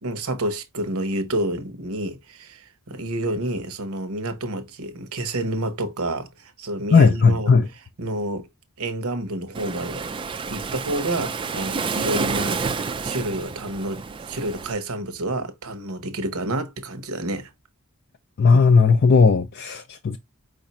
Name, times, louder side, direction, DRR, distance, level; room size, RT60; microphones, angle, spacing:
voice 1, 0.0-7.5 8.0-8.5 8.8-17.5, right 1 dB, 75° right, 0.9 m, -29 dB
voice 2, 6.9-7.7 18.4-20.2, left 5 dB, 50° left, 0.4 m, -16 dB
Waves surf, 9.5-14.7, right 4 dB, 25° right, 0.3 m, -29 dB
4.9 x 2.5 x 4.1 m
head